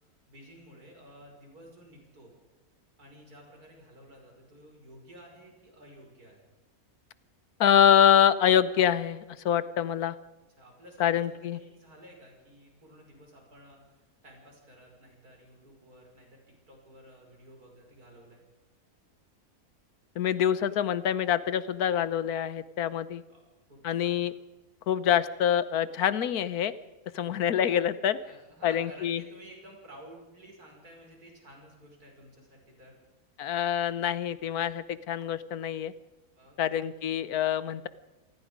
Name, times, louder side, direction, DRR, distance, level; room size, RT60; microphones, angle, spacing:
voice 1, 0.3-2.3 3.0-6.5 10.6-11.2 11.5-16.4 16.7-18.4 23.3-23.4 23.7-24.2 27.1-27.5 28.2-32.9 36.4-36.6, right 1 dB, 80° right, 1 dB, 6.2 m, -52 dB
voice 2, 7.6-10.2 11.0-11.6 20.2-23.2 23.8-24.3 24.9-26.7 27.1-28.2 28.6-29.2 33.4-35.9 36.6-37.9, left 9 dB, 80° left, 16 dB, 1.3 m, -25 dB
27.0 x 19.0 x 5.2 m, 1.1 s
omnidirectional pair, 1.6 m